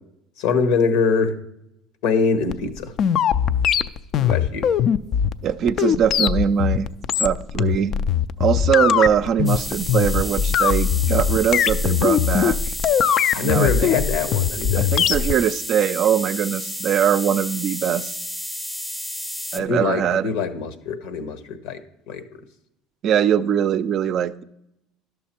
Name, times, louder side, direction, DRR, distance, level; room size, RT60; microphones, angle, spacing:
voice 1, 0.4-1.3 2.0-2.9 4.2-4.7 13.3-14.9 19.5-22.2, left 5 dB, 80° left, 10 dB, 1.0 m, -23 dB
sound 1, 2.5-15.3, left 9 dB, 50° left, 0.4 m, -20 dB
voice 2, 5.4-6.9 7.2-7.9 8.4-12.6 13.4-13.9 14.8-18.1 19.5-20.3 23.0-24.4, right 8 dB, 50° right, 13 dB, 0.4 m, -21 dB
sound 2, 9.5-19.6, equal, 5° left, 0.6 m, -32 dB
11.0 x 6.6 x 4.4 m, 0.81 s
supercardioid pair, 100°, 0 cm